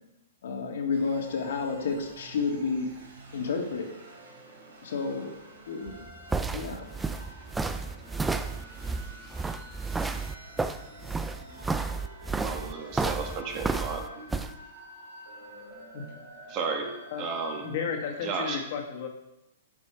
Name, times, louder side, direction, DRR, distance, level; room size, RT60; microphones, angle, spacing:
voice 1, 0.4-2.9 3.3-3.9 4.8-5.3 5.7-6.1 6.5-6.9, left 4 dB, 70° left, 2 dB, 1.7 m, -30 dB
sound 1, 0.9-18.4, right 1 dB, 85° right, 3.1 m, -48 dB
sound 2, 5.9-14.5, right 3 dB, 5° right, 0.4 m, -31 dB
voice 2, 12.4-14.0 16.5-16.9 17.2-17.6 18.2-18.6, right 5 dB, 35° right, 3 dB, 1.5 m, -33 dB
voice 3, 17.6-19.1, left 6 dB, 50° left, 3 dB, 1.6 m, -33 dB
10.0 x 5.4 x 4.4 m, 0.92 s
hypercardioid pair, 145°, 0 cm